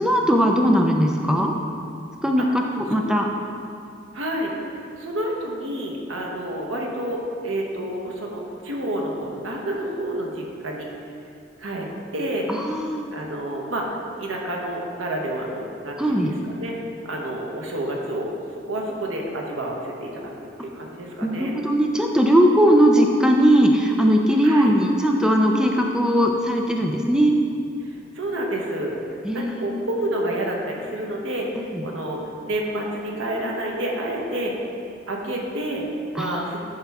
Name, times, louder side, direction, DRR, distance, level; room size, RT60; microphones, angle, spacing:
voice 1, 0.0-1.5 2.2-3.3 12.5-13.1 16.0-16.3 21.2-27.4 29.2-29.8 31.7-31.8 36.2-36.5, equal, 5° right, 1 dB, 0.4 m, -19 dB
voice 2, 4.1-10.9 11.6-12.5 13.1-13.9 14.2-16.8 17.0-18.3 18.6-20.3 20.7-21.5 24.4-24.7 28.1-29.0 29.3-31.5 31.8-34.5 35.1-35.8 36.1-36.6, right 1 dB, 80° right, -1 dB, 1.1 m, -29 dB
10.5 x 4.6 x 3.5 m, 2.5 s
head